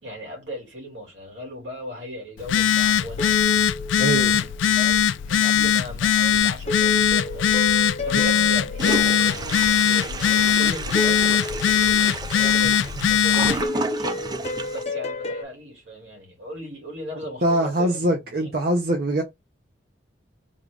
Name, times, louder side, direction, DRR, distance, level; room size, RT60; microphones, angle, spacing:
voice 1, 0.0-3.5 4.8-14.3 14.7-18.5, equal, 85° right, 2.2 m, -38 dB
Telephone, 2.4-13.7, left 8 dB, 90° left, 0.3 m, -20 dB
sound 1, 3.2-4.7 6.7-10.3 10.9-12.5 13.6-15.4, left 2 dB, 35° left, 0.7 m, -32 dB
voice 2, 4.0-4.5 17.4-19.2, right 1 dB, 55° right, 0.7 m, -23 dB
Toilet flush, 8.8-14.8, right 3 dB, 20° right, 0.3 m, -31 dB
3.7 x 2.4 x 3.4 m
head